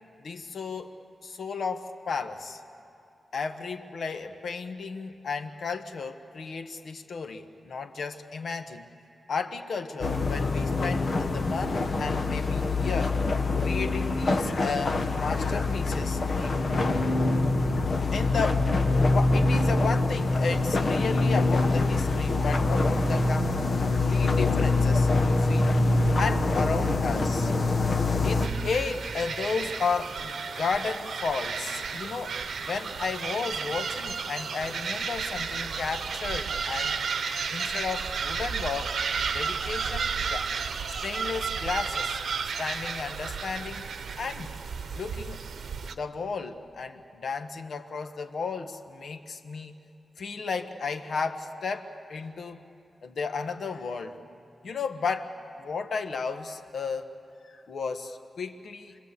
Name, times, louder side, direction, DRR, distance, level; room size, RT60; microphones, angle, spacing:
voice 1, 0.2-0.9 1.2-2.6 3.3-8.9 9.3-13.2 13.6-17.2 17.9-23.6 24.1-25.8 26.2-27.5 28.2-37.0 37.5-38.9 39.2-40.5 41.0-42.2 42.6-43.9 44.2-44.5 44.9-45.4 45.8-49.7 50.2-52.6 53.0-54.2 54.6-57.1 57.4-59.0, left 5 dB, 70° left, 7 dB, 1.2 m, -33 dB
sound 1, 10.0-28.5, left 2 dB, 50° left, 1.4 m, -25 dB
sound 2, 28.4-45.9, right 6 dB, 85° right, 1.0 m, -33 dB
29.0 x 21.5 x 8.3 m, 2.8 s
wide cardioid pair, 145°, 0 cm